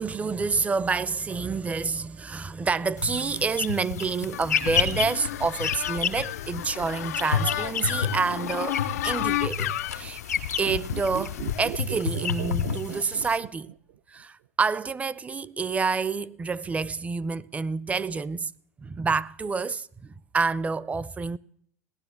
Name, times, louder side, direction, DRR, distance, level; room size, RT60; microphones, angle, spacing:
voice 1, 0.0-8.8 9.0-10.2 10.6-13.7 14.1-18.5 18.8-21.4, right 4 dB, 15° right, 0.5 m, -28 dB
sound 1, 3.0-13.4, left 7 dB, 90° left, 1.9 m, -31 dB
sound 2, 4.3-11.7, left 14 dB, 75° left, 0.5 m, -32 dB
sound 3, 10.6-14.0 14.2-14.3, right 13 dB, 65° right, 0.7 m, -37 dB
17.5 x 11.0 x 7.1 m
hypercardioid pair, 95°, 8 cm